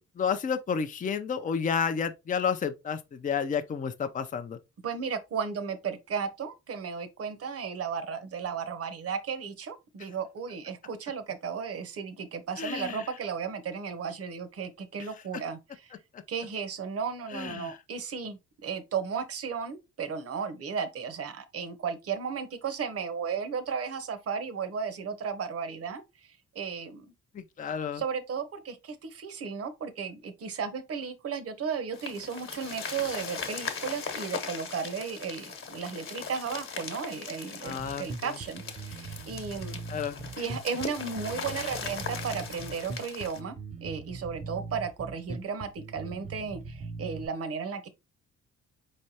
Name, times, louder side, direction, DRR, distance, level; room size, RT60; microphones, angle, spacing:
voice 1, 0.2-4.6 12.6-13.0 16.1-16.2 17.3-17.8 27.3-28.0 37.6-38.3 39.9-40.4, left 6 dB, 25° left, 0.5 m, -31 dB
voice 2, 4.8-15.9 16.3-27.1 27.9-39.8 40.4-43.5 43.8-47.9, right 6 dB, 50° right, 0.9 m, -35 dB
sound 1, 31.9-43.4, left 5 dB, 45° left, 1.2 m, -39 dB
Bass guitar, 37.7-47.3, right 4 dB, 25° right, 0.6 m, -41 dB
4.5 x 3.2 x 2.8 m
cardioid pair, 90°, 30 cm